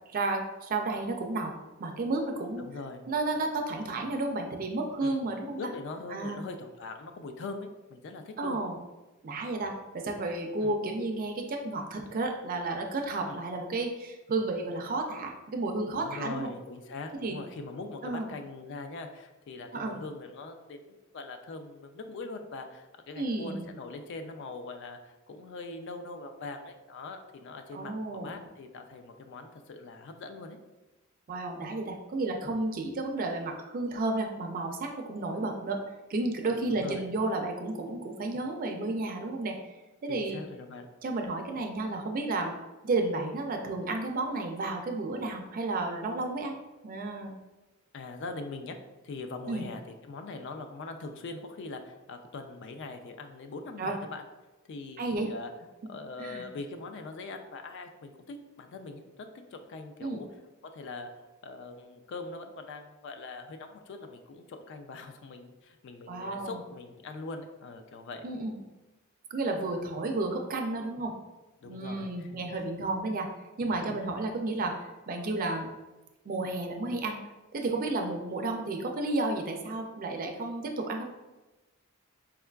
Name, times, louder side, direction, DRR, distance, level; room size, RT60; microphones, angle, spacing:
voice 1, 0.1-1.5 1.8-2.6 3.1-5.7 6.1-6.4 8.4-8.7 9.2-16.5 17.2-17.4 18.0-18.3 19.7-20.0 23.2-23.7 27.7-28.3 31.3-35.8 36.1-39.7 40.0-40.4 41.0-42.5 42.8-46.6 46.8-47.4 49.5-49.6 53.8-54.0 55.0-55.3 56.2-56.4 60.0-60.2 66.1-66.6 68.2-68.6 69.3-71.2 71.6-73.3 73.6-75.7 76.3-77.2 77.5-81.0, right 2 dB, 40° right, 3 dB, 0.4 m, -32 dB
voice 2, 2.6-3.0 5.0-8.6 10.6-10.8 13.2-13.3 15.9-30.6 36.7-37.1 40.1-40.9 47.9-48.8 49.0-54.2 54.7-55.5 55.9-60.3 60.6-61.1 61.4-68.2 71.6-72.6 73.9-74.0, left 3 dB, 55° left, 6 dB, 0.3 m, -42 dB
4.4 x 2.3 x 2.2 m, 1.1 s
head